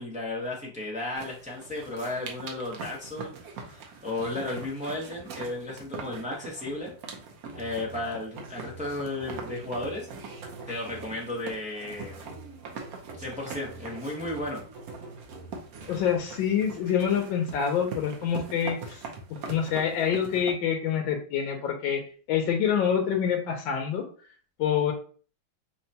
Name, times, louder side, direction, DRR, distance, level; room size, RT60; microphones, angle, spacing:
voice 1, 0.0-3.4 3.7-6.9 7.5-10.1 10.7-12.2 13.2-14.6, left 2 dB, 10° right, -4 dB, 0.4 m, -34 dB
sound 1, 1.2-20.5, right 4 dB, 65° right, 1.0 m, -42 dB
sound 2, 7.5-11.4 12.0-15.9, right 3 dB, 90° right, 2.0 m, -47 dB
voice 2, 15.9-19.0 19.5-22.0 22.3-24.0 24.6-24.9, left 8 dB, 85° left, 2 dB, 1.4 m, -26 dB
5.5 x 2.2 x 2.7 m, 0.41 s
omnidirectional pair, 2.1 m